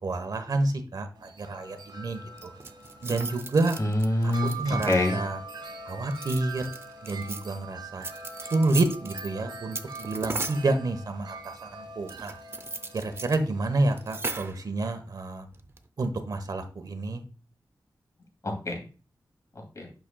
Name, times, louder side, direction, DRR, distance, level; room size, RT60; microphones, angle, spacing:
voice 1, 0.0-2.5 3.0-3.8 4.2-5.4 5.9-6.7 7.0-8.1 8.5-12.3 12.9-15.5 16.0-17.2, right 2 dB, 60° right, 8 dB, 1.1 m, -29 dB
Wind chime, 1.2-14.5, right 3 dB, 85° right, 1.1 m, -42 dB
sound 1, 2.4-5.2 6.1-7.4 8.0-9.3 9.7-10.7 12.1-13.4 13.6-13.7 13.9-14.6 15.5-15.9, right 3 dB, 30° right, 0.6 m, -37 dB
voice 2, 3.8-5.2 18.4-18.8 19.5-19.9, left 1 dB, 45° left, 2 dB, 2.4 m, -26 dB
8.7 x 6.3 x 2.3 m, 0.36 s
wide cardioid pair, 145°, 8 cm